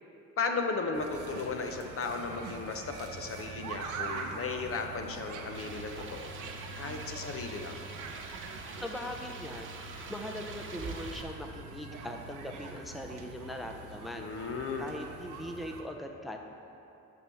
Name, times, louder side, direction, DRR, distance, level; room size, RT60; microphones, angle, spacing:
voice 1, 0.4-6.3 6.8-7.8 14.1-14.9, left 4 dB, 45° left, 4 dB, 0.9 m, -35 dB
sound 1, 0.9-15.8, right 4 dB, 85° right, 0.9 m, -44 dB
sound 2, 5.5-11.2, right 4 dB, 40° right, 0.9 m, -45 dB
voice 2, 8.8-9.7 10.1-14.2 14.8-16.4, left 1 dB, ahead, 3 dB, 0.6 m, -40 dB
7.6 x 5.5 x 7.0 m, 2.9 s
cardioid pair, 90°, 30 cm